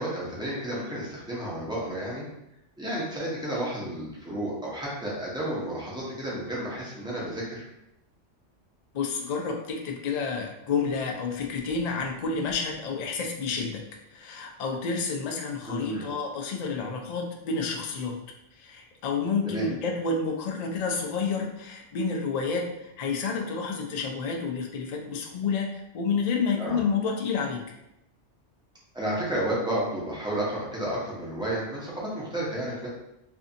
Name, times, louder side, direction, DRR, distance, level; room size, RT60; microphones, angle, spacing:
voice 1, 0.0-2.3 2.8-7.6 15.7-16.1 19.4-19.7 26.6-26.8 28.9-32.9, right 1 dB, 5° right, -7 dB, 0.5 m, -31 dB
voice 2, 8.9-13.8 14.1-18.2 18.6-27.6, left 5 dB, 80° left, 1 dB, 0.3 m, -29 dB
2.6 x 2.6 x 2.5 m, 0.85 s
omnidirectional pair, 1.2 m